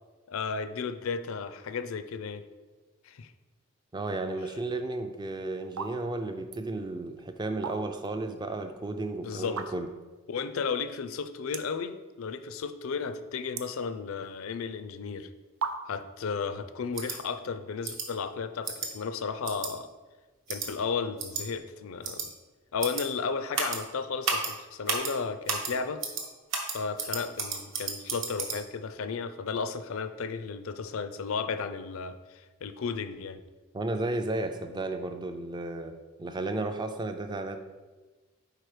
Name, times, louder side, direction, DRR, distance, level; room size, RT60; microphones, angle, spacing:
voice 1, 0.3-2.5 3.0-3.3 9.2-9.6 10.3-15.3 15.9-19.9 20.5-22.3 22.7-26.0 26.7-33.4, left 5 dB, 75° left, 10 dB, 0.4 m, -34 dB
voice 2, 3.9-9.9 33.7-35.9 36.2-37.6, right 2 dB, 20° right, 7 dB, 0.3 m, -33 dB
sound 1, 4.9-5.2 5.7-6.0 6.3-6.6 7.4-8.1 8.5-8.6 9.4-10.0 10.6-10.7 10.8-10.9 11.5-11.9 12.2-12.7 13.0-14.4 15.1-15.2 15.6-16.1, right 6 dB, 80° right, 0.5 m, -36 dB
sound 2, 17.0-17.2 17.8-18.1 18.7-18.9 19.5-19.7 20.5-20.7 21.2-21.4 22.0-22.3 22.8-23.0 23.5-23.8 24.2-24.5 24.9-25.1 25.5-25.7 26.0-26.2 26.5-28.6, right 5 dB, 65° right, 1.0 m, -31 dB
4.6 x 4.6 x 4.9 m, 1.3 s
head